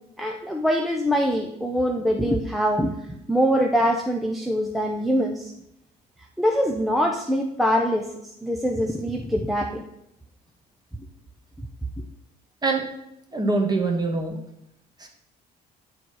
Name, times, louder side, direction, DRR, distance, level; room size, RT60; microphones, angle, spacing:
voice 1, 0.2-5.5 6.4-8.1 8.4-9.8, equal, ahead, 1 dB, 0.6 m, -23 dB
voice 2, 13.3-14.4 15.0-15.1, right 3 dB, 25° right, 2 dB, 1.5 m, -24 dB
8.6 x 4.0 x 4.6 m, 0.79 s
cardioid pair, 110°, 17 cm